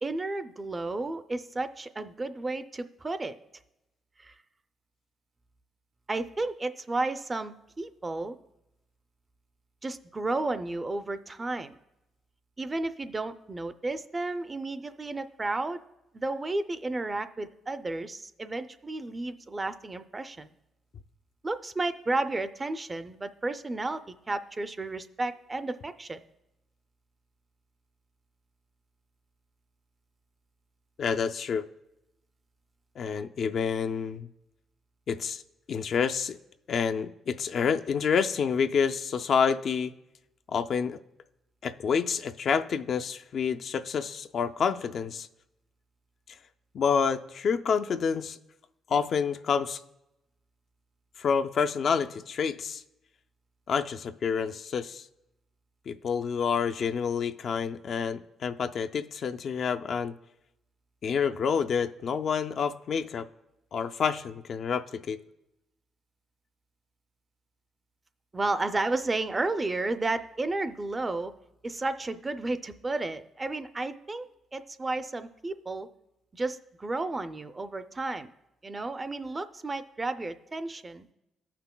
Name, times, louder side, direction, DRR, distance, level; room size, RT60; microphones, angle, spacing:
voice 1, 0.0-3.4 4.2-4.3 6.1-8.4 9.8-11.8 12.6-15.8 16.1-20.5 21.4-24.0 24.3-26.2 68.3-71.3 71.6-74.2 74.5-75.9 76.3-78.3 78.6-81.1, right 2 dB, 25° right, 11 dB, 0.4 m, -32 dB
voice 2, 31.0-31.6 33.0-34.3 35.1-35.4 35.7-36.4 36.7-39.9 40.5-41.0 41.6-45.3 46.7-48.4 48.9-49.8 51.2-52.8 53.7-55.0 55.9-60.2 61.0-63.3 63.7-65.2, left 6 dB, 55° left, 8 dB, 0.3 m, -28 dB
14.0 x 5.8 x 2.2 m, 0.90 s
cardioid pair, 90°, 0 cm